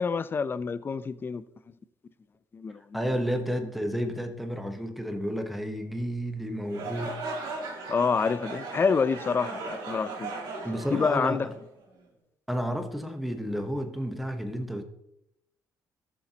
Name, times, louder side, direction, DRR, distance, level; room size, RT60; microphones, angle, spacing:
voice 1, 0.0-1.4 2.5-3.0 7.9-10.3 10.9-11.5, left 5 dB, 30° left, 0.5 m, -27 dB
voice 2, 2.9-7.2 10.6-11.5 12.5-14.8, equal, ahead, 0.9 m, -31 dB
sound 1, 6.6-11.9, right 3 dB, 85° right, 2.3 m, -37 dB
14.0 x 6.9 x 2.9 m
cardioid pair, 115°, 7 cm